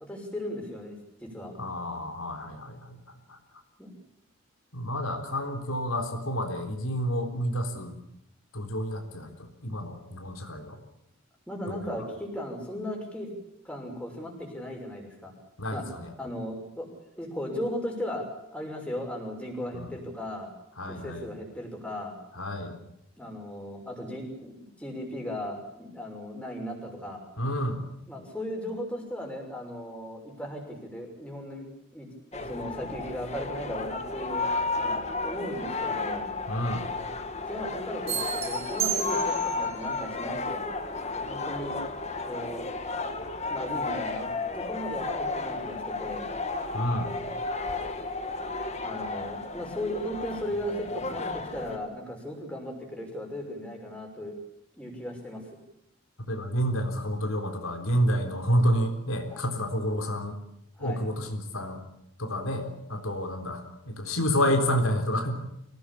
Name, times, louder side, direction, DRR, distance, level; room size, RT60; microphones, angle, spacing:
voice 1, 0.0-1.5 3.8-3.9 11.5-13.3 13.6-15.3 15.7-15.9 16.2-16.9 17.2-18.3 18.5-20.5 20.9-22.2 23.2-27.2 28.1-31.7 31.9-32.1 32.3-34.4 34.8-36.3 37.5-40.6 41.1-41.8 42.2-42.7 43.5-46.3 48.8-54.3 54.8-55.4 59.3-59.4 60.8-61.0, equal, 5° left, 0 dB, 6.2 m, -36 dB
voice 2, 1.6-3.0 4.7-7.9 8.5-10.8 11.7-12.0 15.6-16.1 19.7-19.9 20.8-21.3 22.4-22.8 27.4-27.8 36.5-36.8 46.7-47.1 56.3-60.4 60.8-61.8 62.2-65.3, equal, 80° left, 4 dB, 3.9 m, -29 dB
sound 1, 32.3-51.8, left 3 dB, 30° left, 1.9 m, -33 dB
sound 2, 38.1-39.7, right 8 dB, 30° right, 4.4 m, -32 dB
25.0 x 18.0 x 8.5 m, 0.81 s
head